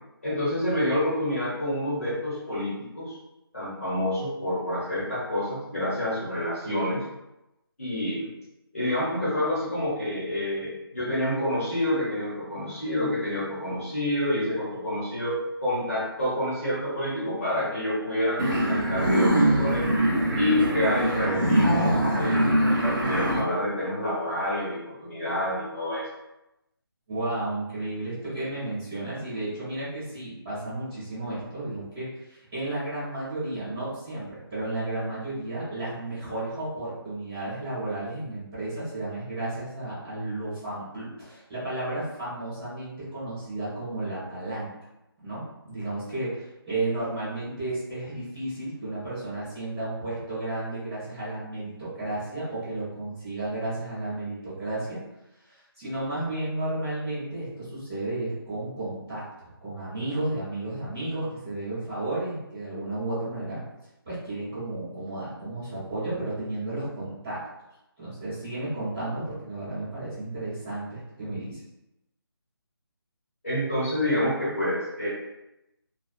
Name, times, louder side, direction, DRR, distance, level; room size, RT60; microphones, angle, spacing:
voice 1, 0.2-3.2 3.5-7.0 7.8-8.3 8.7-19.9 20.3-26.1 73.4-75.1, left 1 dB, 35° left, -10 dB, 1.1 m, -28 dB
sound 1, 18.4-23.4, right 1 dB, 55° right, 0.6 m, -23 dB
voice 2, 27.1-44.7 45.2-55.0 55.5-63.6 64.0-67.4 68.0-71.6, right 2 dB, 5° right, -17 dB, 0.7 m, -33 dB
2.3 x 2.3 x 2.4 m, 0.91 s
figure-of-eight pair, 180°, 13 cm